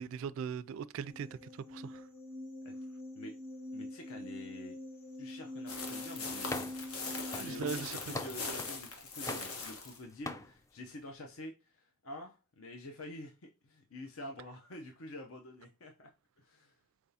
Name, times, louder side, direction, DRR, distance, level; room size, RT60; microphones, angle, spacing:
voice 1, 0.0-2.0 7.3-8.0, right 6 dB, 65° right, 0.3 m, -39 dB
sound 1, 1.1-7.9, left 1 dB, 40° left, 1.3 m, -45 dB
voice 2, 3.7-4.8 5.2-6.5 7.2-16.1 16.4-16.8, left 1 dB, 70° left, 0.7 m, -48 dB
sound 2, 5.7-10.0, left 3 dB, 85° left, 1.1 m, -41 dB
sound 3, 6.5-6.9 7.3-8.8 9.3-10.0 10.3-10.5, left 2 dB, 15° left, 0.3 m, -42 dB
4.6 x 3.5 x 2.7 m
head